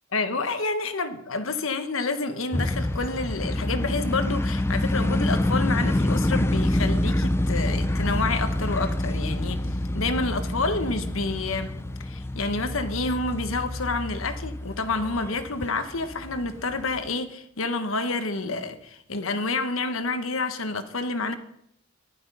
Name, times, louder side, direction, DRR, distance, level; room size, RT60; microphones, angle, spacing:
voice 1, 0.1-9.7 9.9-11.7 12.0-21.3, left 3 dB, 85° left, 1.3 m, -28 dB
sound 1, 2.5-17.1, left 1 dB, 10° left, 0.4 m, -27 dB
14.0 x 11.5 x 5.5 m
head